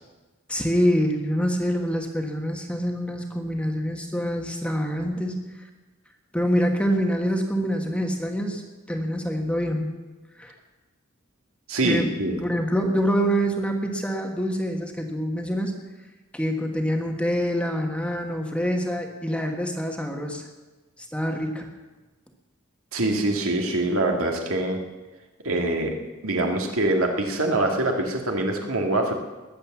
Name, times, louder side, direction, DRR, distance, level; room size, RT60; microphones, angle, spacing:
voice 1, 0.5-5.3 6.3-8.6 8.9-9.9 10.4-10.5 11.8-12.1 12.4-15.7 16.3-20.4 21.1-21.7, equal, 5° left, 3 dB, 1.4 m, -25 dB
voice 2, 11.7-12.4 22.9-24.8 25.4-29.1, right 2 dB, 75° right, 2 dB, 2.1 m, -24 dB
20.5 x 7.7 x 7.2 m, 1.2 s
head